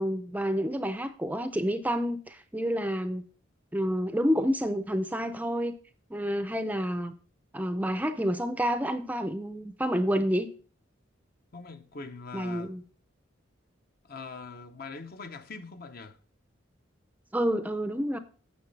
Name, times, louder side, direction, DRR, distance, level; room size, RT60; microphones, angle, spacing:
voice 1, 0.0-3.2 3.7-5.8 6.1-7.1 7.5-10.5 12.3-12.8 17.3-18.2, equal, 10° right, 0.5 m, -29 dB
voice 2, 11.5-12.7 14.0-16.2, left 4 dB, 50° left, 0.8 m, -42 dB
9.6 x 7.5 x 3.3 m
head